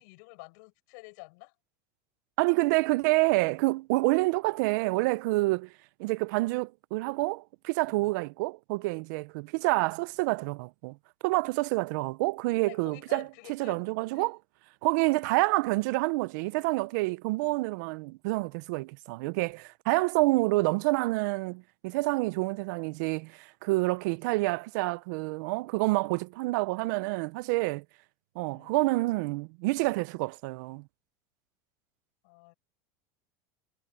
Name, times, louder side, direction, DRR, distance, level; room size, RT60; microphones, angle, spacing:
voice 1, 0.0-1.5 7.9-8.1 12.7-13.8 14.1-14.3 28.4-28.8 32.2-32.5, left 30 dB, 70° left, 5.9 m, -49 dB
voice 2, 2.4-5.7 6.0-11.0 11.2-13.2 13.5-14.4 14.8-27.8 28.4-30.8, right 23 dB, 70° right, 0.6 m, -28 dB
supercardioid pair, 145°, 10 cm